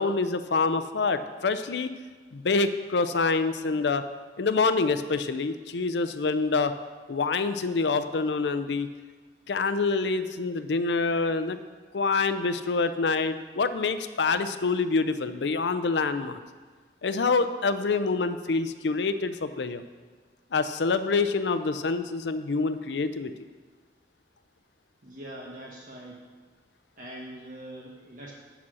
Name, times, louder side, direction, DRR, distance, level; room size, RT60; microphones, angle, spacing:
voice 1, 0.0-1.9 2.3-4.0 4.4-6.7 7.1-8.9 9.5-11.6 11.9-16.4 17.0-19.8 20.5-23.3, left 4 dB, 85° left, 11 dB, 0.5 m, -26 dB
voice 2, 25.0-26.2 27.0-28.3, right 1 dB, 50° right, -4 dB, 1.1 m, -42 dB
8.6 x 6.1 x 6.2 m, 1.4 s
head